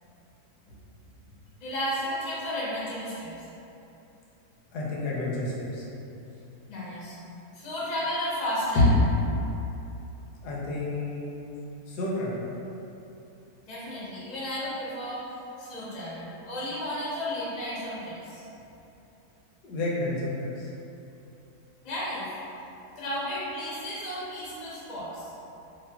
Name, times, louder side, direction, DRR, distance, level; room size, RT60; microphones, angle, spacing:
voice 1, 1.6-3.5 6.7-7.2 7.5-8.8 13.6-18.4 21.8-22.3 22.9-25.3, equal, 50° left, -8 dB, 0.5 m, -33 dB
voice 2, 4.7-5.8 8.7-8.9 10.4-11.3 11.9-12.4 19.6-20.7, left 2 dB, 80° left, -5 dB, 1.2 m, -28 dB
4.5 x 2.0 x 2.2 m, 2.9 s
omnidirectional pair, 1.7 m